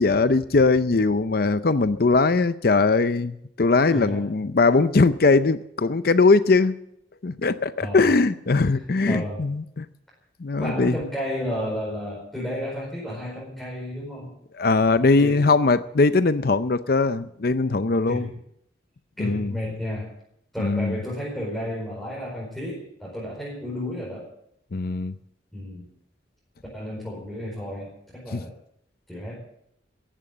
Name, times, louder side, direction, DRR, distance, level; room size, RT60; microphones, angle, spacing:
voice 1, 0.0-6.7 7.2-9.9 10.4-11.0 14.6-18.2 19.2-19.5 20.6-21.0 24.7-25.1 28.3-28.4, left 3 dB, 55° left, 13 dB, 0.6 m, -20 dB
voice 2, 3.9-4.4 7.8-8.1 9.1-9.4 10.6-14.3 15.2-15.5 18.1-18.4 19.2-20.1 20.5-24.3 25.5-25.9 26.7-28.5 29.1-29.4, equal, ahead, -6 dB, 5.1 m, -32 dB
15.5 x 11.0 x 7.8 m, 0.74 s
head